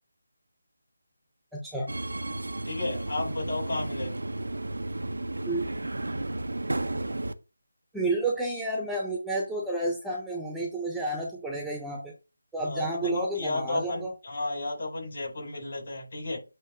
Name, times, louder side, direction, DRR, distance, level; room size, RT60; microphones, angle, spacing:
voice 1, 1.5-1.9 5.5-5.6 7.9-12.1 12.5-14.1, right 2 dB, ahead, 1.0 m, -30 dB
Subway metro underground, 1.9-7.3, right 2 dB, 85° right, 0.8 m, -33 dB
voice 2, 2.6-4.1 12.6-16.4, left 2 dB, 50° left, 4.4 m, -33 dB
8.7 x 2.9 x 5.0 m
figure-of-eight pair, 165°, 0 cm